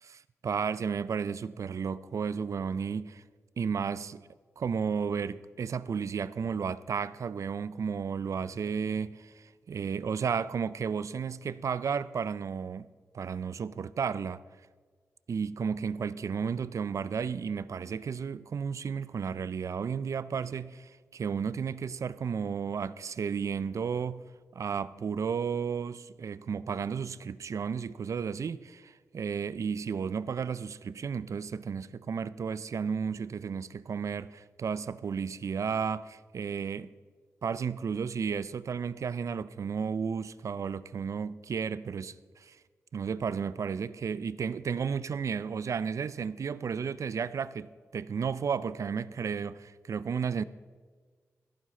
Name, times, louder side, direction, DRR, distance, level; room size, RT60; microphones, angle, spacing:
voice 1, 0.0-3.2 3.6-4.2 4.6-12.9 13.1-14.4 15.3-24.2 24.6-36.9 37.4-42.6 42.9-50.4, right 6 dB, 65° right, 0.5 m, -33 dB
14.0 x 12.0 x 4.3 m
cardioid pair, 50°, 6 cm